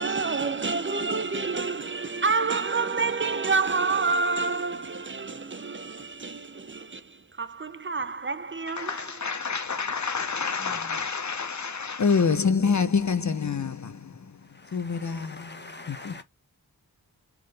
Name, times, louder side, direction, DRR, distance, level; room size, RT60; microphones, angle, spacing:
voice 1, 0.0-7.0 7.4-8.9, right 4 dB, 30° right, 0.5 m, -28 dB
voice 2, 8.7-14.4 14.7-15.6 15.9-16.2, left 5 dB, 45° left, 0.7 m, -27 dB
voice 3, 10.6-11.0 14.1-16.2, left 2 dB, 25° left, 1.2 m, -45 dB
3.8 x 3.8 x 3.3 m
wide cardioid pair, 80°, 39 cm